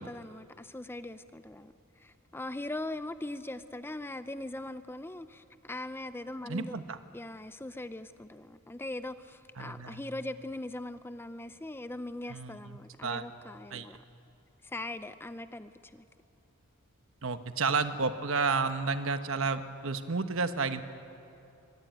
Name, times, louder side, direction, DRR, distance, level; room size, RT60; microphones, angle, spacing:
voice 1, 0.0-6.8 7.1-14.0 14.6-16.1, left 1 dB, 10° left, 12 dB, 0.5 m, -41 dB
voice 2, 6.5-7.0 9.6-10.0 12.3-13.2 13.7-13.9 17.2-20.8, right 4 dB, 60° right, 9 dB, 1.2 m, -31 dB
23.5 x 21.5 x 9.1 m, 2.8 s
head